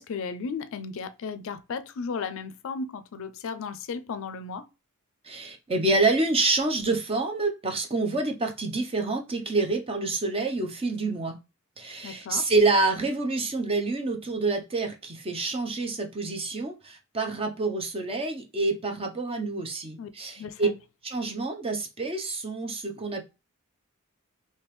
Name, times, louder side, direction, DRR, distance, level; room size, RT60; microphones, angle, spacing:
voice 1, 0.0-4.6 12.0-12.4 20.0-20.1 20.4-20.7, left 5 dB, 65° left, 0.4 m, -35 dB
voice 2, 5.2-11.4 11.8-20.7 21.0-23.2, right 3 dB, 25° right, 0.6 m, -27 dB
3.4 x 2.7 x 3.1 m
head